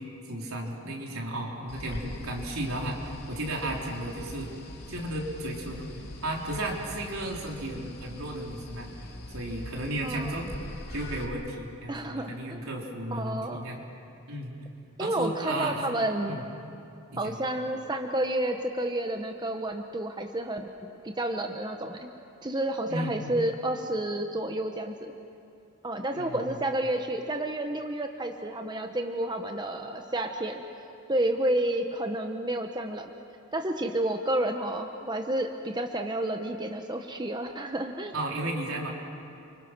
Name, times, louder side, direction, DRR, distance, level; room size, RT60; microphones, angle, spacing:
voice 1, 0.3-4.5 4.9-8.9 9.3-10.5 10.9-13.8 14.3-14.5 15.0-15.8 16.3-16.4 17.1-17.4 22.9-23.3 26.1-26.4 38.1-38.9, right 1 dB, 75° right, -1 dB, 4.0 m, -34 dB
sound 1, 1.7-11.2, left 1 dB, 45° left, 2.5 m, -42 dB
voice 2, 10.0-10.4 11.9-12.6 13.1-13.6 15.0-16.4 17.2-22.1 22.4-25.1 25.8-30.6 31.1-33.1 33.5-38.1, right 1 dB, 20° right, 4 dB, 1.0 m, -30 dB
29.5 x 25.5 x 6.1 m, 2.7 s
head